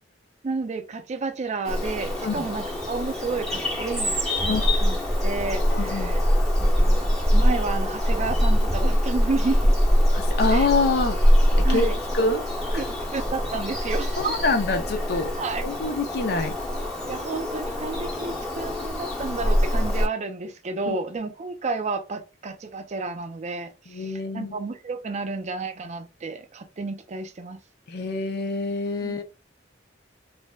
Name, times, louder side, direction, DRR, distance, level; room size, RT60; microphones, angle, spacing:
voice 1, 0.4-4.1 4.4-6.2 6.6-9.7 10.5-10.7 11.6-12.0 12.7-14.4 15.4-15.6 17.1-27.6 29.0-29.2, right 3 dB, 40° right, 0.4 m, -31 dB
Bird vocalization bird call bird song, 1.6-20.1, equal, ahead, 0.9 m, -23 dB
voice 2, 5.7-6.2 10.1-11.2 11.6-12.4 12.7-12.8 14.2-15.3 15.6-16.5 20.9-21.0 23.9-24.6 27.9-29.2, left 3 dB, 60° left, 0.5 m, -26 dB
3.2 x 2.6 x 2.2 m
head